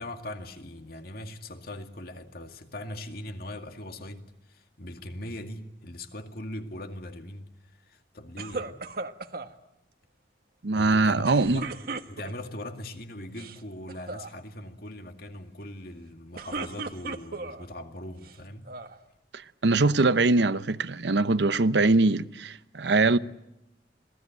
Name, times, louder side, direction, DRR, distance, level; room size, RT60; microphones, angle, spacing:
voice 1, 0.0-8.8 10.7-11.8 12.1-18.7, left 1 dB, 55° left, 2.2 m, -40 dB
sound 1, 8.4-9.5 11.2-12.5 13.2-13.6 13.9-14.3 16.1-17.6 18.2-19.0, right 3 dB, 55° right, 1.4 m, -37 dB
voice 2, 10.6-11.6 19.6-23.2, right 3 dB, 70° right, 0.8 m, -22 dB
26.5 x 18.5 x 9.2 m
head